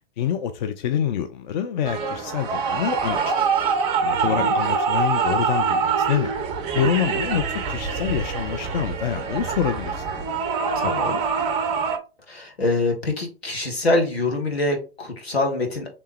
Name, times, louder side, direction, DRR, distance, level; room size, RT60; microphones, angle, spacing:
voice 1, 0.2-3.6 4.2-6.3 6.7-10.0, left 9 dB, 45° left, 0.4 m, -26 dB
sound 1, 1.8-12.0, right 5 dB, 20° right, 0.4 m, -24 dB
voice 2, 4.0-4.5 10.7-11.2 12.3-15.9, left 2 dB, 75° left, 1.4 m, -25 dB
3.3 x 3.0 x 3.1 m
figure-of-eight pair, 105°, 31 cm